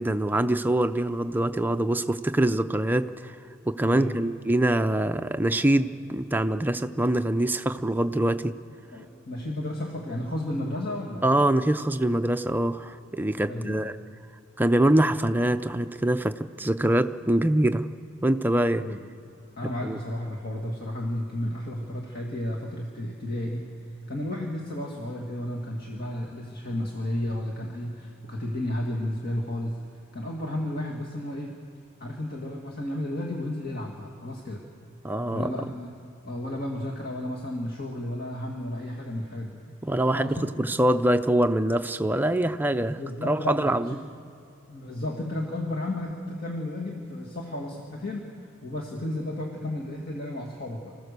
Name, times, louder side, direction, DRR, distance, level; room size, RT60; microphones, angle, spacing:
voice 1, 0.0-3.4 3.7-8.5 11.2-13.9 14.6-17.9 18.2-18.9 19.8-20.0 35.0-35.6 39.8-44.0, right 1 dB, 10° right, 8 dB, 0.5 m, -24 dB
voice 2, 8.9-11.3 13.4-13.9 18.6-19.0 19.6-29.8 30.1-31.6 32.0-34.7 35.3-35.9 36.2-39.6 40.1-40.6 43.0-44.0 44.7-48.3 48.6-51.0, left 1 dB, 50° left, -2 dB, 1.9 m, -33 dB
26.5 x 15.5 x 6.8 m, 2.7 s
head